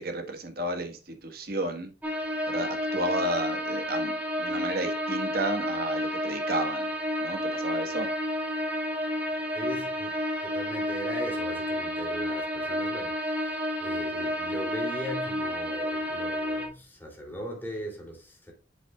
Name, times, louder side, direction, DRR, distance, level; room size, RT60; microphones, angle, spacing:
voice 1, 0.0-1.9 2.5-6.9 7.2-8.1, right 1 dB, 55° right, 1.5 m, -32 dB
sound 1, 2.0-16.7, equal, 10° right, 1.8 m, -30 dB
voice 2, 9.5-10.1 10.4-18.5, equal, 10° left, 2.9 m, -39 dB
7.8 x 7.4 x 2.3 m
head